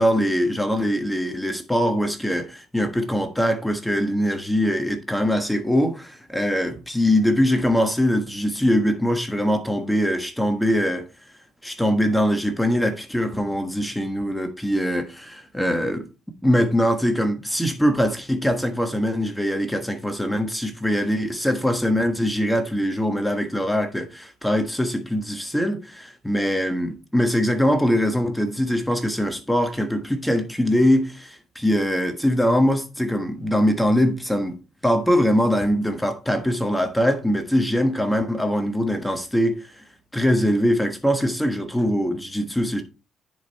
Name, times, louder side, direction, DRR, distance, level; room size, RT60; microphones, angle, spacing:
voice 1, 0.0-11.0 11.6-16.1 16.4-34.6 34.8-39.8 40.1-42.8, equal, 5° left, 1.3 m, -22 dB
9.9 x 5.4 x 4.1 m
cardioid pair, 110°, 0 cm